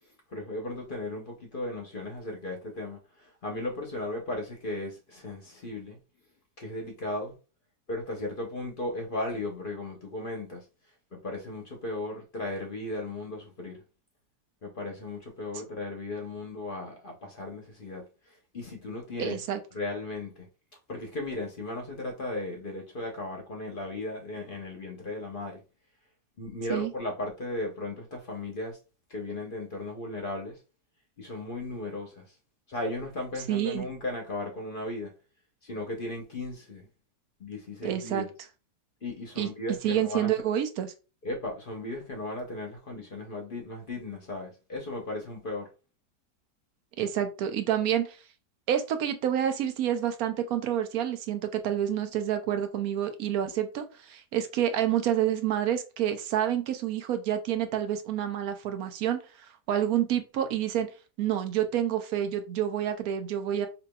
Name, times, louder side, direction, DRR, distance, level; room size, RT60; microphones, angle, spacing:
voice 1, 0.3-6.0 6.6-7.3 7.9-10.7 11.1-13.8 14.6-19.4 19.7-20.5 20.9-25.6 26.4-28.8 29.1-30.6 31.2-32.3 32.7-35.1 35.6-36.9 37.4-38.3 39.0-40.3 41.2-45.7, left 2 dB, 45° left, 0.8 m, -36 dB
voice 2, 19.2-19.6 26.7-26.9 33.5-33.9 37.8-38.2 39.4-39.5 39.8-40.9 47.0-48.2 48.7-59.2 59.7-60.9 61.2-63.7, right 10 dB, 75° right, 1.1 m, -28 dB
4.9 x 2.8 x 2.2 m
omnidirectional pair, 1.6 m